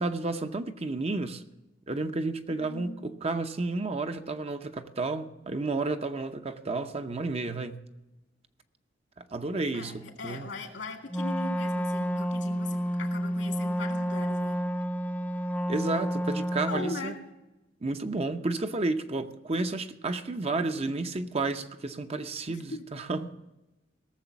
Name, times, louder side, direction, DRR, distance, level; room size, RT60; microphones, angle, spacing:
voice 1, 0.0-1.4 1.9-7.8 9.2-10.5 15.7-17.1 17.8-23.3, right 3 dB, 35° right, 0.7 m, -31 dB
voice 2, 2.5-3.0 9.7-14.6 16.7-17.2 22.5-22.9, left 3 dB, 80° left, 2.4 m, -40 dB
Wind instrument woodwind instrument, 11.1-17.0, equal, 10° left, 0.6 m, -30 dB
17.5 x 7.1 x 7.0 m
head